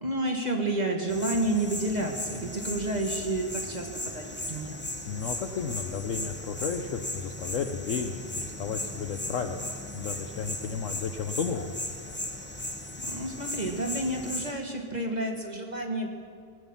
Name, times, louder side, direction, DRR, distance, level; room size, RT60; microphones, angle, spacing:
voice 1, 0.0-4.8 13.1-16.1, right 1 dB, 25° right, 1 dB, 1.4 m, -30 dB
sound 1, 1.1-14.5, left 1 dB, 15° left, 0.4 m, -37 dB
voice 2, 5.1-9.7 9.9-11.7, left 6 dB, 60° left, 6 dB, 0.9 m, -33 dB
19.0 x 9.2 x 7.2 m, 2.1 s
omnidirectional pair, 1.8 m